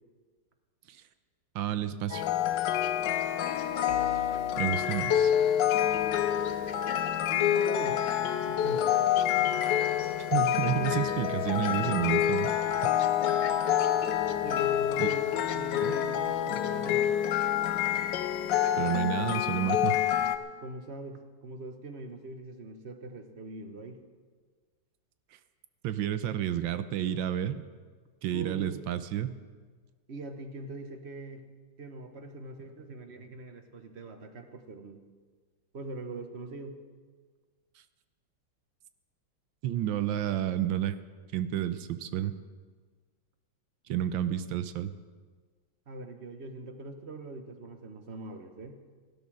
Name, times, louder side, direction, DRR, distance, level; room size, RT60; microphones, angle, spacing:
voice 1, 1.5-2.3 4.6-5.3 10.3-12.5 12.8-13.0 15.0-15.1 15.8-15.9 18.8-20.0 25.8-27.7 28.2-29.3 39.6-41.0 41.3-42.3 43.9-44.9, right 11 dB, 85° right, 12 dB, 1.4 m, -30 dB
sound 1, 2.1-20.4, left 10 dB, 70° left, 1.4 m, -27 dB
voice 2, 7.3-8.1 8.5-9.0 14.2-17.1 20.6-24.0 28.3-28.8 30.1-31.5 31.8-35.0 35.7-36.8 45.9-48.8, right 2 dB, 40° right, 7 dB, 1.2 m, -42 dB
16.0 x 12.5 x 6.2 m, 1.5 s
omnidirectional pair, 2.1 m